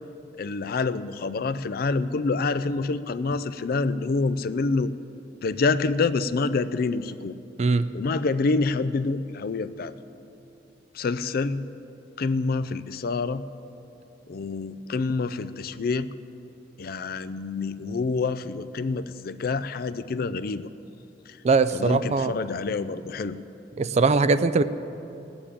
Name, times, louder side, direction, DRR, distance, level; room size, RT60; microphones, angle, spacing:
voice 1, 0.4-4.9 5.4-7.3 7.9-9.9 10.9-11.6 12.2-13.4 14.3-16.1 16.8-20.6 21.7-23.4, left 3 dB, 55° left, 13 dB, 0.4 m, -27 dB
voice 2, 21.4-22.3 23.8-24.6, right 4 dB, 40° right, 13 dB, 0.4 m, -21 dB
17.5 x 7.1 x 8.7 m, 2.9 s
head